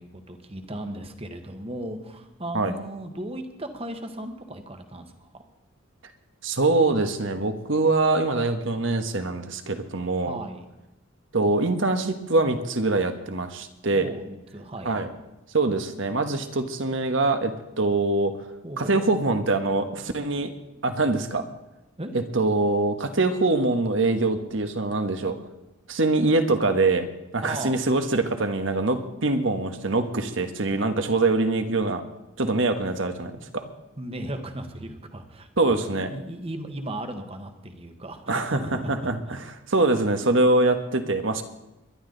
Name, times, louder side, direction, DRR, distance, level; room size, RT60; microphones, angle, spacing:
voice 1, 0.0-5.4 10.2-10.6 13.9-15.0 18.6-19.0 22.0-22.1 27.4-27.8 34.0-39.5, right 1 dB, 30° right, 6 dB, 1.3 m, -36 dB
voice 2, 6.4-10.4 11.3-14.1 14.8-15.1 15.5-18.4 18.8-20.5 20.8-21.4 22.1-25.4 25.9-27.1 27.3-32.0 32.4-33.7 35.6-36.1 38.3-39.4 39.7-41.4, right 2 dB, 65° right, 7 dB, 1.3 m, -24 dB
22.0 x 11.5 x 4.0 m, 0.97 s
head